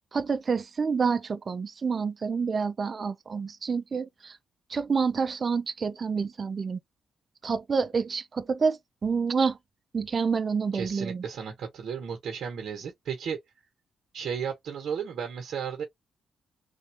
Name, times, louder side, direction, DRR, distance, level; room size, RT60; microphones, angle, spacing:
voice 1, 0.1-4.4 4.7-6.8 7.4-9.6 9.9-11.2, right 5 dB, 40° right, 0.5 m, -28 dB
voice 2, 10.7-13.4 14.1-15.8, right 7 dB, 70° right, 1.1 m, -34 dB
3.4 x 2.6 x 2.9 m
cardioid pair, 105°, 0 cm